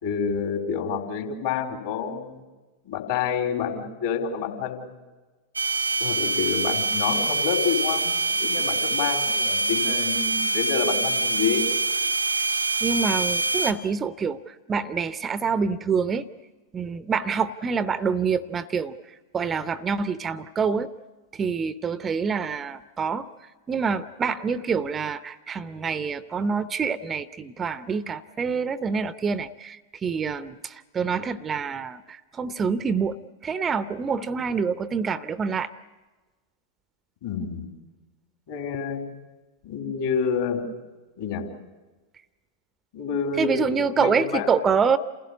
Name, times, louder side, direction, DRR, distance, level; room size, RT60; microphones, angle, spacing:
voice 1, 0.0-2.4 2.8-5.0 6.0-11.7 37.2-37.7 38.5-39.0 39.6-40.6 41.2-41.4 42.9-44.5, left 6 dB, 55° left, 2 dB, 4.0 m, -28 dB
sound 1, 5.6-13.7, right 3 dB, 85° right, 1.3 m, -25 dB
voice 2, 12.8-16.2 16.7-18.9 19.3-20.9 21.3-23.3 23.7-33.2 33.4-35.7 43.4-45.0, right 5 dB, 20° right, 14 dB, 0.7 m, -26 dB
28.5 x 16.0 x 9.7 m, 1.3 s
figure-of-eight pair, 90°, 0 cm